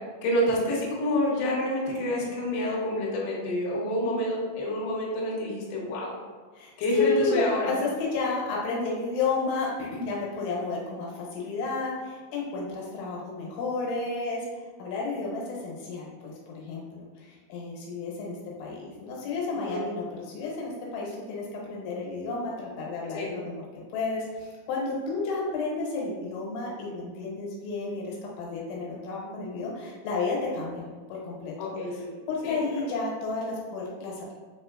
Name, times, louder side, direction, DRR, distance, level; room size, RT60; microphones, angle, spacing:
voice 1, 0.2-6.1 6.8-7.7 19.6-19.9 23.1-23.3 31.6-32.1 32.4-32.8, left 1 dB, 70° left, -4 dB, 3.0 m, -28 dB
voice 2, 6.5-14.5 14.8-23.6 23.9-31.5 32.3-34.3, left 3 dB, 90° left, -3 dB, 3.4 m, -31 dB
6.8 x 2.8 x 2.4 m, 1.5 s
omnidirectional pair, 5.4 m